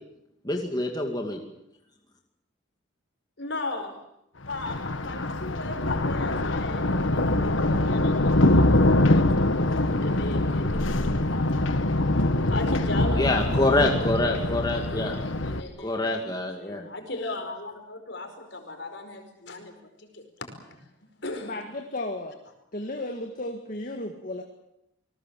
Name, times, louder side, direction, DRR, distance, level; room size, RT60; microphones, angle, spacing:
voice 1, 0.4-1.4 13.2-15.2 15.8-16.8, left 2 dB, 20° left, 1 dB, 2.2 m, -26 dB
voice 2, 3.4-3.9 4.5-11.6 12.5-16.0 16.6-19.7 20.0-20.5 21.2-21.6, left 2 dB, 60° left, 5 dB, 5.0 m, -37 dB
Thunder, 4.4-15.6, left 1 dB, 75° left, 1.5 m, -24 dB
voice 3, 21.4-22.4 22.7-24.4, left 1 dB, 45° left, 3 dB, 1.9 m, -34 dB
27.5 x 19.5 x 7.6 m, 0.82 s
head